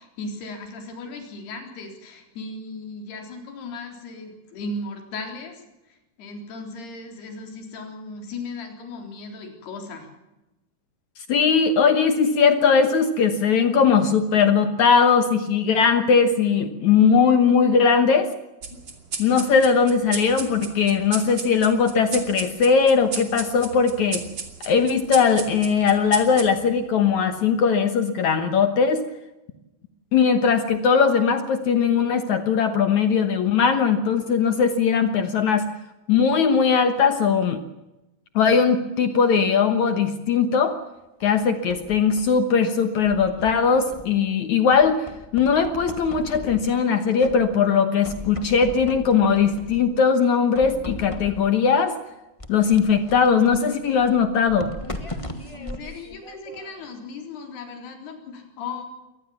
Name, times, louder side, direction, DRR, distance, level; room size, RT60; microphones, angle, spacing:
voice 1, 0.0-10.1 55.5-58.8, left 3 dB, 80° left, 4 dB, 5.8 m, -37 dB
voice 2, 11.3-18.3 19.2-24.2 24.6-29.1 30.1-35.7 36.1-37.6 38.4-40.8 41.2-45.1 45.3-52.0 52.5-54.7, left 6 dB, 65° left, 9 dB, 2.1 m, -19 dB
sound 1, 18.6-27.5, right 5 dB, 40° right, 3.0 m, -35 dB
sound 2, 41.2-42.4 43.0-44.3 44.7-46.9 47.2-47.7 48.0-50.0 50.5-51.6 52.4-56.9, left 1 dB, 45° left, 0.4 m, -38 dB
24.0 x 19.5 x 7.2 m, 0.98 s
omnidirectional pair, 4.5 m